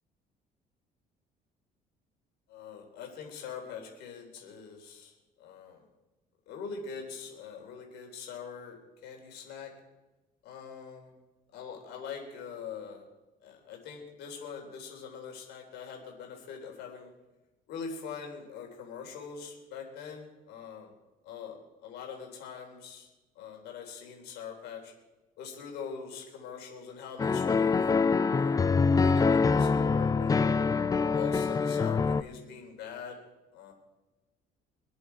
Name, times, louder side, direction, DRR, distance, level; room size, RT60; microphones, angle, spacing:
voice 1, 2.5-5.8 6.5-9.7 10.4-11.1 11.5-13.0 13.4-17.1 17.7-21.0 21.2-23.1 23.4-24.9 25.4-27.8 28.3-30.4 31.1-33.2 33.5-33.7, left 6 dB, 85° left, 2 dB, 3.7 m, -43 dB
sound 1, 27.2-32.2, left 4 dB, 20° left, 0.5 m, -25 dB
25.5 x 8.5 x 4.7 m, 1.1 s
cardioid pair, 110°, 17 cm